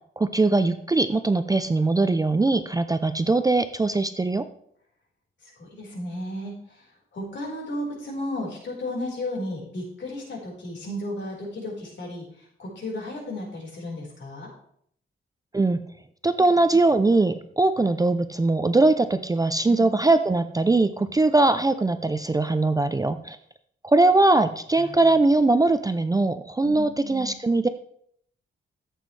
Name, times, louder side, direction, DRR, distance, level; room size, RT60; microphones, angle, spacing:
voice 1, 0.2-4.4 15.5-15.8 16.2-23.4 23.8-27.7, right 2 dB, 15° right, 10 dB, 0.4 m, -21 dB
voice 2, 5.4-6.9 7.1-14.5 19.7-20.0 24.8-25.0 26.6-27.3, left 1 dB, 60° left, -2 dB, 4.6 m, -34 dB
13.5 x 8.1 x 3.3 m, 0.66 s
wide cardioid pair, 125°, 21 cm